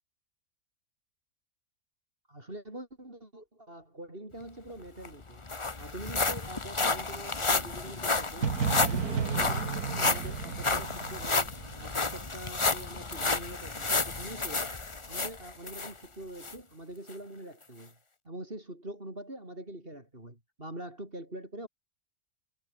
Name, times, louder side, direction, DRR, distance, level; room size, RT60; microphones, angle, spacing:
voice 1, 2.3-5.5 5.8-8.5 8.8-11.5 11.8-14.8 15.1-18.0 18.2-21.7, right 1 dB, 35° right, 6.5 m, -44 dB
sound 1, 4.7-4.8 5.0-15.9 16.4-16.5 17.1-17.2, left 3 dB, 20° left, 1.1 m, -31 dB
sound 2, 8.4-12.3, right 6 dB, 70° right, 2.3 m, -33 dB
omnidirectional pair, 1.7 m